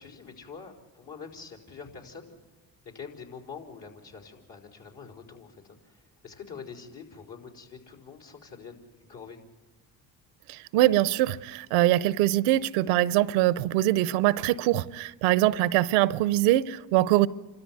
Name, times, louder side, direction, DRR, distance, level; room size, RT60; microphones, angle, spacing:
voice 1, 0.0-2.3 2.9-9.4, left 5 dB, 60° left, 5.0 m, -45 dB
voice 2, 10.5-17.3, right 15 dB, 90° right, 0.7 m, -23 dB
29.0 x 13.5 x 9.6 m
supercardioid pair, 55°, 46 cm